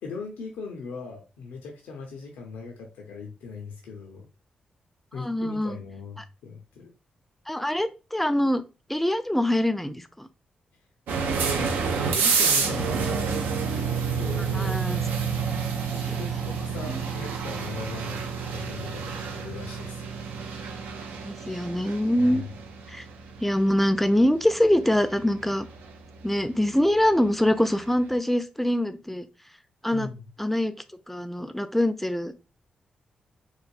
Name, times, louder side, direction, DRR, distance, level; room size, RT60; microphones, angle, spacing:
voice 1, 0.0-4.3 5.1-6.9 11.2-13.3 13.9-14.8 16.2-20.1 22.2-22.5 29.9-30.3, left 4 dB, 80° left, 2 dB, 0.4 m, -39 dB
voice 2, 5.2-5.8 7.5-8.6 8.9-10.3 14.5-15.0 16.1-16.2 16.9-17.0 21.2-22.4 22.9-23.0 23.4-25.7 26.2-29.3 29.8-30.1 30.4-30.7 31.1-32.3, left 1 dB, 5° left, 10 dB, 0.4 m, -24 dB
sound 1, 11.1-27.8, right 5 dB, 80° right, 0.4 m, -29 dB
3.1 x 2.1 x 2.4 m, 0.30 s
hypercardioid pair, 40°, 3 cm